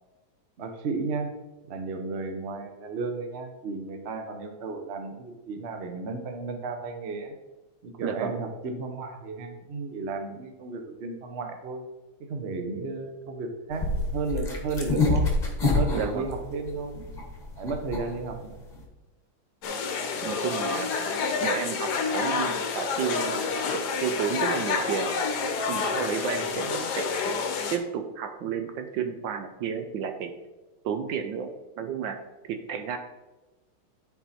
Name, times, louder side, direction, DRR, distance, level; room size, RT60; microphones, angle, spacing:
voice 1, 0.6-1.3 1.6-7.3 7.8-11.8 12.2-15.3 15.7-17.0 17.6-18.6 20.1-20.3, right 3 dB, 45° right, 5 dB, 0.8 m, -34 dB
voice 2, 8.0-8.3 15.9-16.3 20.2-21.0 21.4-23.4 23.7-25.1 25.7-30.3 30.8-32.2 32.4-33.0, right 7 dB, 70° right, 7 dB, 1.2 m, -32 dB
sound 1, 13.7-18.8, left 2 dB, 25° left, 1.1 m, -27 dB
sound 2, 19.6-27.8, left 5 dB, 60° left, 1.3 m, -28 dB
11.0 x 4.6 x 4.2 m, 1.1 s
omnidirectional pair, 2.3 m